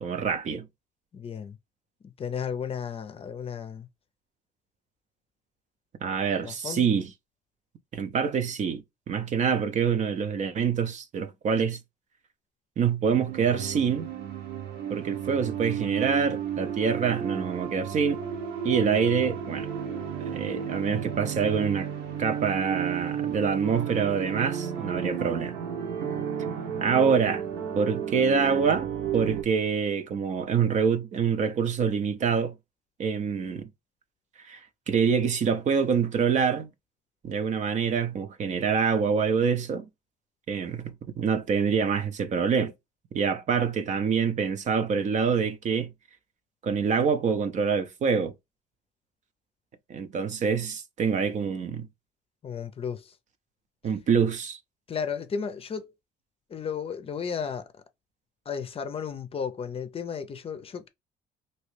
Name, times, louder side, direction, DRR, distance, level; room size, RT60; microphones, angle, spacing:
voice 1, 0.0-0.7 6.0-7.1 7.9-11.8 12.8-14.1 14.9-18.2 18.6-19.7 20.2-21.9 22.2-25.6 26.8-27.4 27.7-32.5 33.0-33.7 34.4-34.6 34.9-36.7 37.2-39.9 40.5-42.7 43.1-45.9 46.6-48.3 49.9-51.9 53.8-54.6, right 6 dB, 45° right, 0.6 m, -26 dB
voice 2, 1.1-1.6 2.0-3.9 6.4-6.9 52.4-53.1 54.9-55.9 56.5-57.6 58.5-60.9, left 6 dB, 35° left, 0.6 m, -34 dB
sound 1, 13.0-29.4, right 8 dB, 75° right, 1.0 m, -33 dB
3.0 x 2.7 x 3.2 m
cardioid pair, 110°, 17 cm